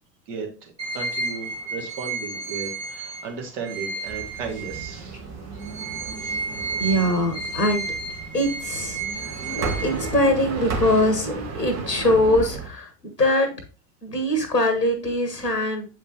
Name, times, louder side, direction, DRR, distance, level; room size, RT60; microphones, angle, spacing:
voice 1, 0.3-5.2, right 4 dB, 50° right, 2 dB, 2.0 m, -35 dB
sound 1, 0.8-5.2 5.6-10.5, right 4 dB, 85° right, 3.2 m, -32 dB
sound 2, 4.0-12.7, right 4 dB, 35° right, 1.5 m, -33 dB
voice 2, 6.8-7.9 8.3-9.3 9.6-13.5 14.0-15.9, left 1 dB, 90° left, 6 dB, 1.2 m, -22 dB
7.6 x 5.0 x 2.9 m, 0.32 s
figure-of-eight pair, 75°, 47 cm